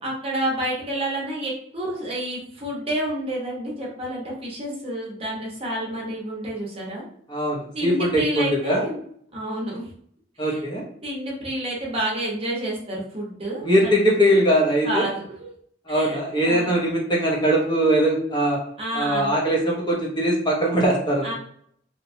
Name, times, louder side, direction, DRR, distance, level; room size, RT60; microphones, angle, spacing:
voice 1, 0.0-7.0 7.7-9.0 9.3-9.9 10.4-10.6 11.0-13.9 14.8-15.5 15.9-16.2 16.4-16.7 18.8-19.3 21.2-21.3, right 1 dB, 30° right, -4 dB, 0.8 m, -29 dB
voice 2, 7.3-8.8 10.4-10.8 13.6-15.0 15.9-18.6 18.9-21.3, equal, 25° left, -3 dB, 0.7 m, -21 dB
2.8 x 2.2 x 2.6 m, 0.65 s
head